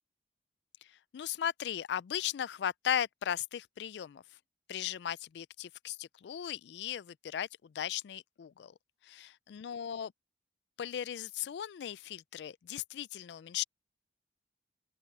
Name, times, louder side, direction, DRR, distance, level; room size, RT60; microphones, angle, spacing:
voice 1, 1.1-4.2 4.7-8.7 9.0-10.1 10.8-13.6, left 10 dB, 70° left, 0.3 m, -37 dB
open air
head